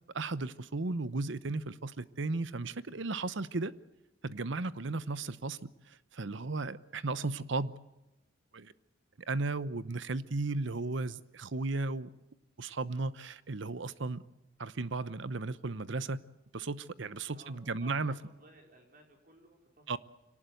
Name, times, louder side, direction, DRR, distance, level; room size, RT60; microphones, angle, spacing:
voice 1, 0.1-3.7 4.2-7.7 8.5-8.7 9.3-12.1 12.6-14.2 14.6-16.2 16.5-18.2 19.9-20.0, right 3 dB, 65° right, 0.9 m, -35 dB
voice 2, 17.3-20.0, right 2 dB, 45° right, 5.0 m, -58 dB
25.0 x 18.5 x 7.9 m
head